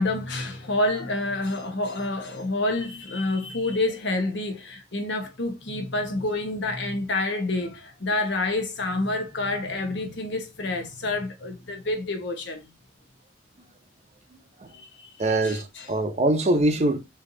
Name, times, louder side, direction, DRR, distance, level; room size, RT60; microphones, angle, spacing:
voice 1, 0.0-12.7 14.7-15.1 15.4-15.9, left 2 dB, 65° left, 0.9 m, -28 dB
voice 2, 15.2-17.0, right 1 dB, 35° right, 0.6 m, -23 dB
3.2 x 2.8 x 3.7 m
head